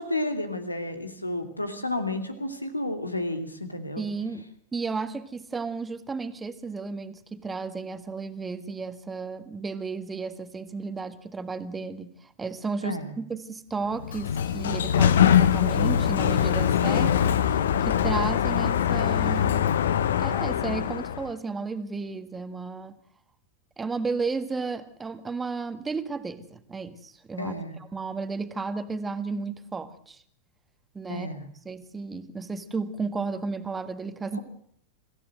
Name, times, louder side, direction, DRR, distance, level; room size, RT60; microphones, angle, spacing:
voice 1, 0.0-4.0 12.8-13.1 27.4-27.8 31.1-31.4 34.3-34.4, left 2 dB, 85° left, 8 dB, 2.5 m, -31 dB
voice 2, 4.0-19.7 20.2-23.0 23.8-27.5 27.9-30.2 30.9-31.3 31.6-34.4, right 4 dB, 15° right, 11 dB, 1.7 m, -33 dB
Sliding door, 13.9-21.3, left 9 dB, 60° left, 1.1 m, -23 dB
25.5 x 15.5 x 7.9 m, 0.65 s
figure-of-eight pair, 90°, 0 cm